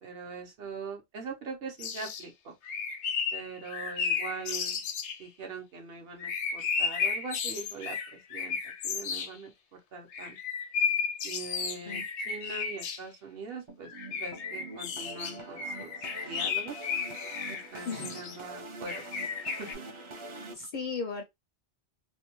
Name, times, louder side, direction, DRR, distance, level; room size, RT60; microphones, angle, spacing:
voice 1, 0.0-2.5 3.3-4.8 5.2-8.6 8.8-9.5 9.9-10.4 11.2-15.9 16.2-16.8 17.5-19.1 19.6-19.8, right 4 dB, 60° right, 0.9 m, -42 dB
sound 1, 1.8-2.2 2.6-5.2 6.2-9.3 10.1-13.0 13.9-18.4 18.9-19.7, left 6 dB, 80° left, 0.9 m, -33 dB
sound 2, 13.7-20.5, right 2 dB, 45° right, 0.4 m, -45 dB
voice 2, 17.8-18.2 20.1-20.2 20.5-21.2, left 4 dB, 55° left, 0.5 m, -36 dB
2.6 x 2.1 x 2.9 m
omnidirectional pair, 1.2 m